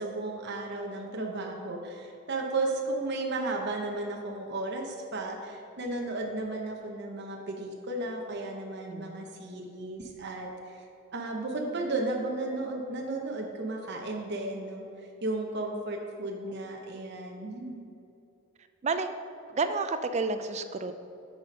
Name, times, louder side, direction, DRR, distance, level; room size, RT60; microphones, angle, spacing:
voice 1, 0.0-10.8 11.1-14.8 15.2-17.8, right 2 dB, 55° right, 1 dB, 0.8 m, -34 dB
voice 2, 19.5-20.9, right 4 dB, 35° right, 9 dB, 0.4 m, -30 dB
9.2 x 4.2 x 5.2 m, 2.7 s
head